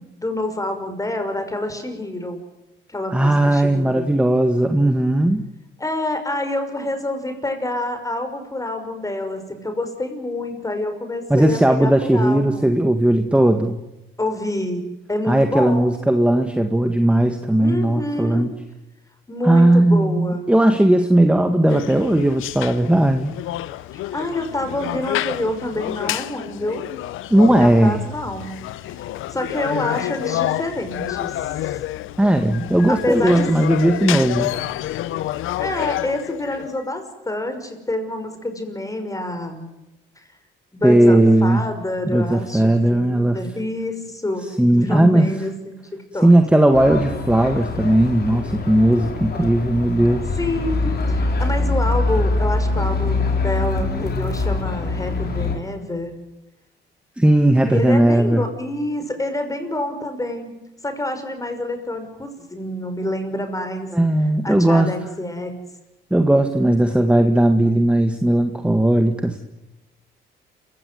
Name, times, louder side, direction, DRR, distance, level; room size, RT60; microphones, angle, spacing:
voice 1, 0.0-2.4 2.9-4.1 5.8-12.7 14.2-14.8 15.1-15.9 17.6-18.5 19.3-20.4 23.9-26.8 27.3-31.8 32.9-33.5 35.6-39.7 40.7-46.3 50.4-56.1 57.5-60.5 60.8-63.9 64.4-65.5, left 1 dB, 15° left, 7 dB, 5.9 m, -27 dB
voice 2, 3.1-5.4 11.3-13.8 15.3-18.5 19.4-23.3 27.3-28.0 32.2-34.5 40.8-41.6 42.1-43.4 44.6-45.3 46.2-50.2 57.2-58.4 63.9-64.9 66.1-69.4, right 1 dB, 5° right, 6 dB, 1.9 m, -17 dB
sound 1, 21.7-36.8, left 14 dB, 90° left, 0.8 m, -29 dB
sound 2, 46.7-55.6, left 3 dB, 55° left, 5.3 m, -23 dB
28.0 x 16.5 x 9.6 m, 0.98 s
cardioid pair, 90°, 20 cm